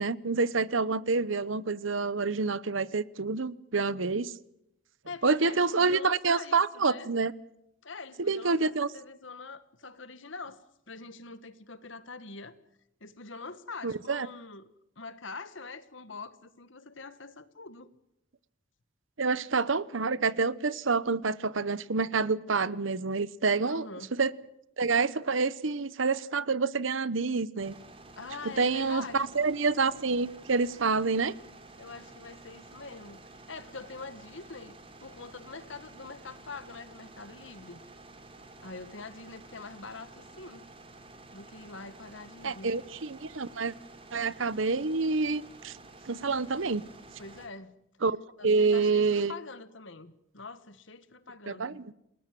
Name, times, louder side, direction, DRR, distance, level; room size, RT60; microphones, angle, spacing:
voice 1, 0.0-4.3 5.2-7.3 8.2-8.9 13.8-14.3 19.2-24.3 24.8-27.8 28.4-31.4 42.4-43.7 44.1-45.8 46.1-46.8 48.0-48.2 48.4-49.3 51.5-51.8, right 4 dB, 70° right, 0.9 m, -27 dB
voice 2, 5.1-7.1 7.8-12.6 13.0-14.7 15.0-17.9 23.7-24.1 28.2-29.4 31.8-37.8 38.6-40.6 41.3-42.8 47.2-47.7 48.4-51.8, left 4 dB, 65° left, 1.7 m, -44 dB
sound 1, 27.6-47.5, right 2 dB, 25° right, 3.2 m, -51 dB
29.0 x 19.5 x 7.7 m
head